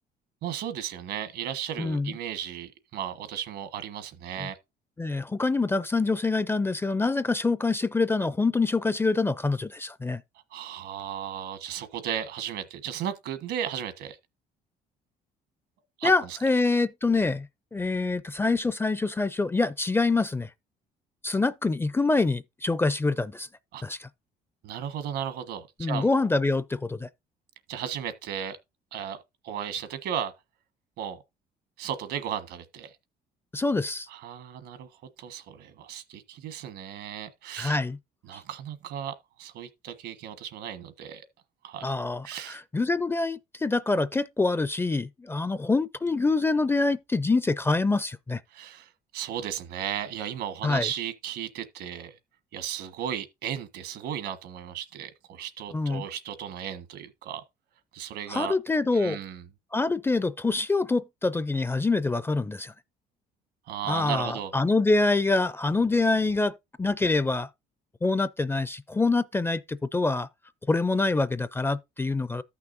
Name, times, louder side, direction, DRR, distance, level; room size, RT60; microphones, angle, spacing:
voice 1, 0.4-4.6 10.5-14.2 16.0-16.4 23.7-23.8 24.6-26.3 27.7-28.6 28.9-30.3 31.0-31.2 31.8-33.0 34.1-34.9 35.2-37.8 38.3-41.2 41.6-41.9 42.2-42.6 48.5-52.2 52.5-57.4 57.9-58.5 58.9-59.4 63.7-64.5, right 9 dB, 80° right, 1.4 m, -35 dB
voice 2, 1.8-2.1 4.4-4.5 5.0-10.2 16.0-17.5 17.7-20.5 21.2-23.5 23.8-24.1 25.8-27.1 33.5-34.1 37.6-38.0 41.8-48.4 50.6-50.9 55.7-56.0 58.3-59.2 59.7-62.7 63.9-67.5 68.0-70.3 70.7-72.4, left 3 dB, 15° left, 0.4 m, -25 dB
14.0 x 6.0 x 2.6 m
cardioid pair, 110°, 17 cm